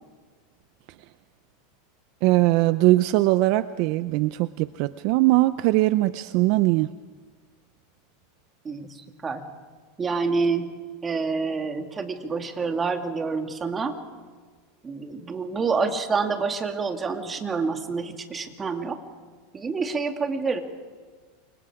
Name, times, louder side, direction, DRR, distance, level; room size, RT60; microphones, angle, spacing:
voice 1, 2.2-6.9, right 18 dB, 55° right, 14 dB, 0.6 m, -21 dB
voice 2, 8.6-9.4 10.0-10.7 11.0-13.9 14.8-19.0 19.5-20.6, right 4 dB, 20° right, 5 dB, 2.3 m, -27 dB
29.0 x 25.5 x 4.9 m, 1.5 s
supercardioid pair, 135°, 0 cm